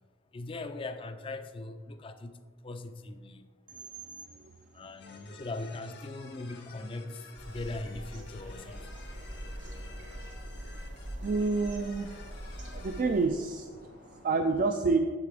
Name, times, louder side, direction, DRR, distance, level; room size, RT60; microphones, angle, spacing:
voice 1, 0.3-3.5 4.7-8.8, left 2 dB, 25° left, 9 dB, 0.4 m, -40 dB
sound 1, 5.0-13.0, left 4 dB, 55° left, 0.8 m, -52 dB
sound 2, 7.4-13.3, equal, 70° right, 1.4 m, -43 dB
sound 3, 8.3-14.3, left 1 dB, 85° left, 1.8 m, -55 dB
voice 2, 11.2-12.1 12.7-13.7 14.2-15.0, right 4 dB, 45° right, 5 dB, 0.3 m, -28 dB
8.1 x 6.8 x 3.4 m, 1.5 s
head